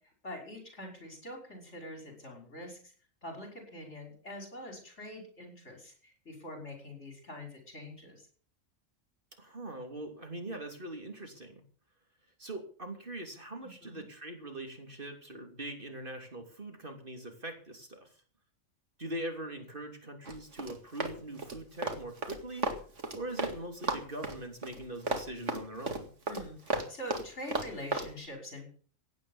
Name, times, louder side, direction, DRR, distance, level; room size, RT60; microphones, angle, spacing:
voice 1, 0.2-2.9 3.2-8.3 13.6-14.0 26.3-28.8, left 1 dB, 60° left, 3 dB, 6.1 m, -44 dB
voice 2, 9.4-11.6 12.4-18.1 19.0-22.7 23.1-26.1, right 1 dB, 40° right, 4 dB, 3.3 m, -42 dB
Run, 20.3-23.6 23.8-28.1, right 2 dB, 65° right, 2.6 m, -34 dB
16.5 x 9.7 x 7.2 m, 0.43 s
omnidirectional pair, 1.3 m